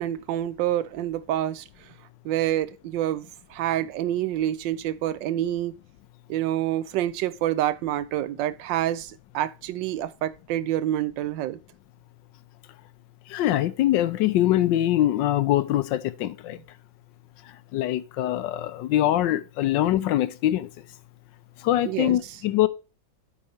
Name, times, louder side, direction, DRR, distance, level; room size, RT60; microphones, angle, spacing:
voice 1, 0.0-1.6 2.2-5.7 6.3-11.6 21.8-22.4, right 12 dB, 80° right, 1.3 m, -27 dB
voice 2, 13.3-16.6 17.7-20.7 21.6-22.7, left 13 dB, 80° left, 1.3 m, -23 dB
8.3 x 4.2 x 5.0 m
omnidirectional pair, 2.0 m